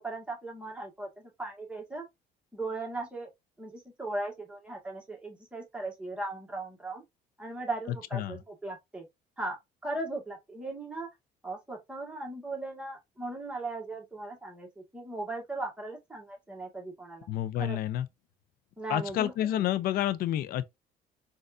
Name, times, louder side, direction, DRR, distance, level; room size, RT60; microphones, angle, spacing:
voice 1, 0.0-2.0 2.5-3.3 3.6-7.0 7.4-9.1 9.4-9.6 9.8-11.1 11.4-17.3 17.6-17.8 18.8-19.7, right 2 dB, 5° right, 1.5 m, -38 dB
voice 2, 17.3-18.1 18.9-20.6, left 12 dB, 60° left, 0.4 m, -29 dB
4.1 x 2.4 x 2.4 m
cardioid pair, 110°, 17 cm